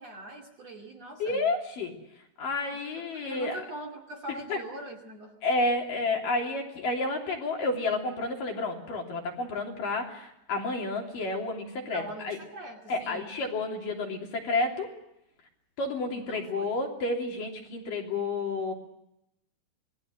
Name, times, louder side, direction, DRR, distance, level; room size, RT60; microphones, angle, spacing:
voice 1, 0.0-1.5 2.7-5.3 11.9-13.3 16.1-16.7, right 1 dB, 45° right, 1 dB, 3.1 m, -42 dB
voice 2, 1.2-1.9 2.4-3.6 4.5-4.6 5.4-12.4 12.9-14.9 15.8-18.7, left 2 dB, 55° left, 1 dB, 4.6 m, -30 dB
27.0 x 20.0 x 7.8 m, 0.82 s
omnidirectional pair, 4.9 m